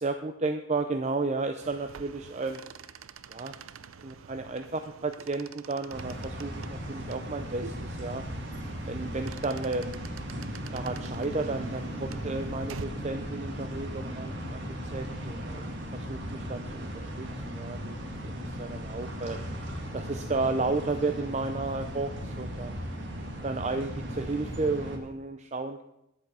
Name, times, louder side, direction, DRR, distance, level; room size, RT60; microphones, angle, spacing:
voice 1, 0.0-2.6 3.3-3.6 4.0-8.3 8.9-10.0 10.7-14.7 14.9-18.0 18.2-19.5 19.9-22.8 23.4-25.8, right 3 dB, 35° right, 7 dB, 0.6 m, -33 dB
sound 1, 1.6-12.9, right 5 dB, 80° right, 0.6 m, -47 dB
sound 2, 5.9-25.0, equal, 55° right, 2.1 m, -37 dB
11.5 x 8.3 x 6.9 m, 0.85 s
head